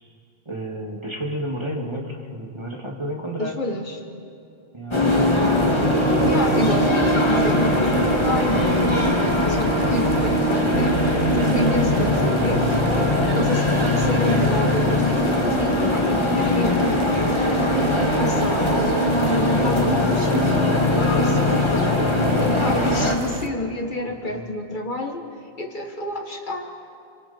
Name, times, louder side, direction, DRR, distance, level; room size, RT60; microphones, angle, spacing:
voice 1, 0.5-3.6 4.7-5.0 9.5-10.1 24.3-24.5, equal, 25° right, -1 dB, 2.3 m, -31 dB
voice 2, 3.4-4.0 6.2-8.6 9.5-11.0 11.3-13.7 14.0-17.0 17.3-21.8 22.4-26.9, left 1 dB, 50° left, 3 dB, 1.5 m, -29 dB
sound 1, 4.9-23.2, left 1 dB, 25° left, 1.9 m, -20 dB
sound 2, 5.1-23.5, right 6 dB, 65° right, 1.1 m, -34 dB
28.0 x 24.0 x 4.4 m, 2.6 s
omnidirectional pair, 1.1 m